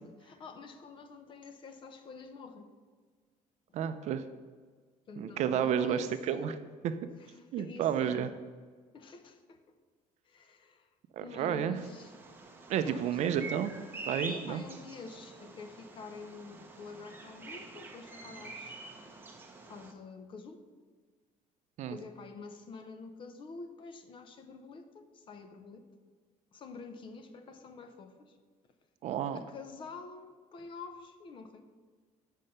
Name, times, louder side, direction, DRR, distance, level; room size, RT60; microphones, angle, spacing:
voice 1, 0.0-2.7 5.1-6.7 7.2-8.3 8.9-9.6 10.2-10.9 11.2-12.1 12.8-13.2 14.2-18.8 19.6-20.6 21.9-25.9 26.5-28.4 29.3-31.6, left 4 dB, 35° left, 8 dB, 0.7 m, -47 dB
voice 2, 3.7-4.2 5.2-6.5 6.8-6.9 7.5-8.3 11.1-11.8 12.7-13.7 14.1-14.6 21.8-22.0 29.0-29.4, right 9 dB, 50° right, 10 dB, 0.5 m, -31 dB
Bird vocalization bird call bird song, 11.8-19.9, right 3 dB, 15° right, 0.8 m, -46 dB
7.4 x 5.5 x 6.5 m, 1.5 s
cardioid pair, 165°, 15 cm